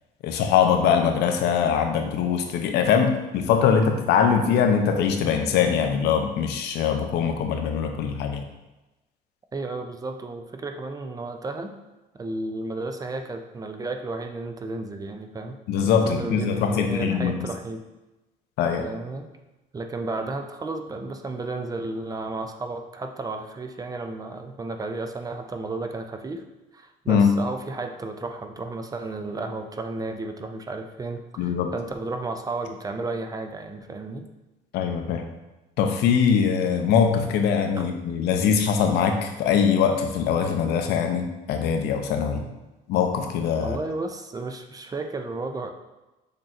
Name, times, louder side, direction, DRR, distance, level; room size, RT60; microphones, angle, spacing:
voice 1, 0.2-8.4 15.7-17.5 18.6-18.9 27.1-27.3 31.4-31.7 34.7-35.3 35.8-42.4 42.9-43.8, left 7 dB, 80° left, 5 dB, 0.6 m, -22 dB
voice 2, 9.5-11.7 12.1-17.8 18.8-19.3 19.7-26.4 26.7-34.3 37.8-37.9 42.3-42.5 43.6-45.7, right 3 dB, 20° right, 6 dB, 0.4 m, -33 dB
6.4 x 2.9 x 2.5 m, 1.0 s
cardioid pair, 110°, 17 cm